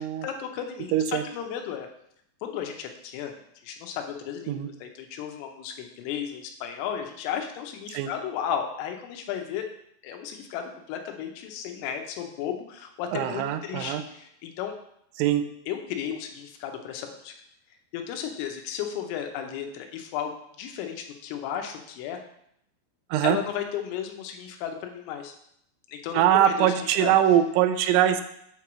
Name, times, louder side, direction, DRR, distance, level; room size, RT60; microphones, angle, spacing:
voice 1, 0.0-1.9 2.4-3.3 3.6-9.7 10.0-14.7 15.7-17.3 17.9-22.2 23.2-25.3 25.9-26.7 27.0-27.1, left 9 dB, 85° left, 4 dB, 3.3 m, -34 dB
voice 2, 0.9-1.3 4.5-4.7 7.9-8.1 13.1-14.0 15.2-15.5 23.1-23.4 26.1-28.2, right 11 dB, 90° right, 8 dB, 3.1 m, -22 dB
7.8 x 3.0 x 6.0 m, 0.73 s
omnidirectional pair, 5.6 m